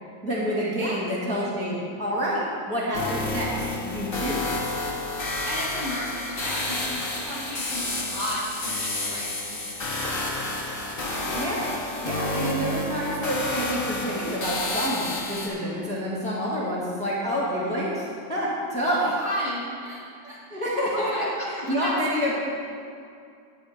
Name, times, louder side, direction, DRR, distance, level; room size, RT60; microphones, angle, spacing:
voice 1, 0.2-4.5 11.3-11.7 12.0-19.0 20.5-22.4, equal, 5° left, -8 dB, 1.6 m, -28 dB
sound 1, 2.9-15.5, left 2 dB, 35° left, 1.6 m, -30 dB
voice 2, 5.5-9.7 15.6-15.9 18.8-20.6 20.9-21.9 22.2-22.4, equal, 30° right, -7 dB, 3.3 m, -34 dB
9.8 x 9.4 x 5.0 m, 2.4 s
omnidirectional pair, 1.7 m